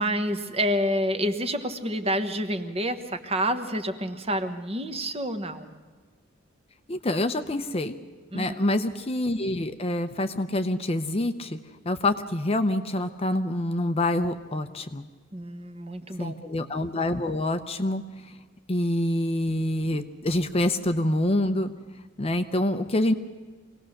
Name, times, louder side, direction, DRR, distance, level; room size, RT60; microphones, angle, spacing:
voice 1, 0.0-5.7 8.3-8.7 15.3-16.4, equal, 30° right, 7 dB, 1.2 m, -28 dB
voice 2, 6.9-8.0 8.3-11.6 11.8-15.1 16.2-18.4 18.7-21.7 22.2-23.2, left 1 dB, 30° left, 8 dB, 0.7 m, -26 dB
25.0 x 18.0 x 6.6 m, 1.4 s
head